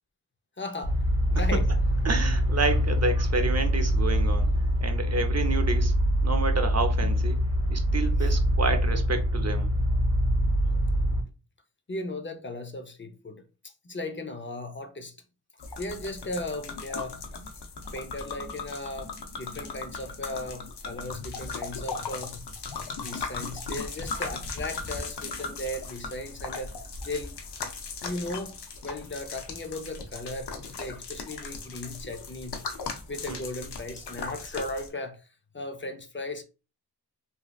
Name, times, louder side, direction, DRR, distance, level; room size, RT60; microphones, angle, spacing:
voice 1, 0.6-1.0 1.3-1.7 7.0-7.1 8.2-8.4 11.9-15.2 15.8-17.2 17.9-22.4 22.9-26.7 27.0-27.4 28.0-28.6 28.8-32.6 33.1-35.3 35.5-36.4, left 2 dB, 30° left, 0.6 m, -36 dB
sound 1, 0.8-11.2, equal, 55° left, 1.4 m, -24 dB
voice 2, 2.0-4.5 4.8-5.9 6.2-7.4 7.7-9.7 33.3-33.4, right 3 dB, 40° right, 0.6 m, -29 dB
sound 2, 15.6-34.9, left 4 dB, 90° left, 0.6 m, -38 dB
3.1 x 2.7 x 2.3 m
wide cardioid pair, 55°, 39 cm